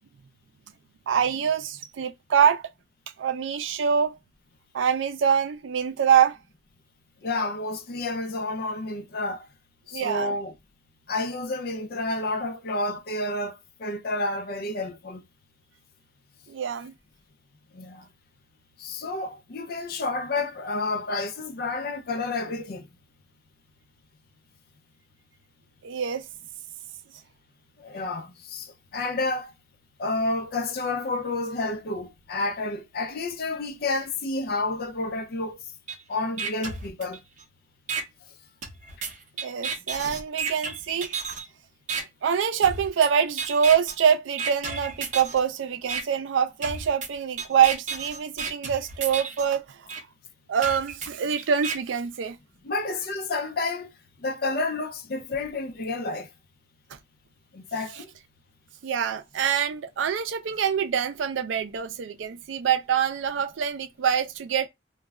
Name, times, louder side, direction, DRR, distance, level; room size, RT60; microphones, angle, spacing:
voice 1, 1.1-2.7 3.2-4.2 4.7-6.4 9.9-10.4 16.5-16.9 25.8-26.3 39.4-41.2 42.2-50.1 50.5-52.4 58.8-64.7, right 7 dB, 90° right, 0.4 m, -25 dB
voice 2, 7.2-9.5 9.9-10.5 11.1-15.2 17.7-18.1 18.8-22.9 27.8-29.5 30.0-35.6 36.1-37.2 52.6-53.9 54.2-56.3 57.5-58.1, left 2 dB, 55° left, 0.4 m, -30 dB
sound 1, 35.9-36.0 36.4-37.4 37.9-38.0 38.6-41.4 41.9-42.0 42.6-43.1 43.4-43.9 44.4-45.4 45.9-46.0 46.6-49.4 49.9-50.0 50.6-51.7, right 5 dB, 40° right, 0.6 m, -32 dB
2.2 x 2.0 x 3.4 m
head